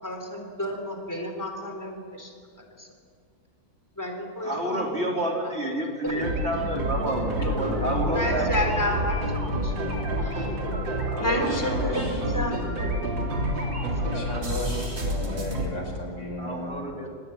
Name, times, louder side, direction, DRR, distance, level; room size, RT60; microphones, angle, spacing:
voice 1, 0.0-2.3 2.8-2.9 4.0-5.0 6.0-6.1 8.1-9.7 10.2-10.5 11.2-12.1 12.3-12.5, left 1 dB, 10° left, 3 dB, 3.6 m, -31 dB
voice 2, 4.4-8.5 11.1-12.2 16.4-17.1, right 1 dB, 35° right, 0 dB, 3.5 m, -30 dB
sound 1, 6.0-15.6, right 1 dB, 85° right, 4.1 m, -28 dB
voice 3, 7.2-8.5 11.2-12.2 14.1-16.9, left 1 dB, 75° left, 2 dB, 5.6 m, -34 dB
25.0 x 20.5 x 9.2 m, 2.1 s
omnidirectional pair, 2.0 m